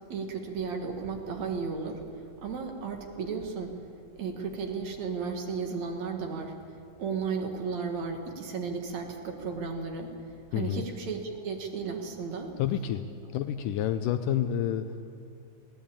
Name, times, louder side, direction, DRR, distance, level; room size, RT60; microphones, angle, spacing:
voice 1, 0.1-2.0 2.4-3.8 4.2-12.5, right 5 dB, 60° right, 4 dB, 2.8 m, -34 dB
voice 2, 10.5-10.8 12.6-13.0 13.3-14.9, left 10 dB, 80° left, 10 dB, 2.2 m, -29 dB
21.5 x 17.5 x 8.7 m, 2.6 s
omnidirectional pair, 3.9 m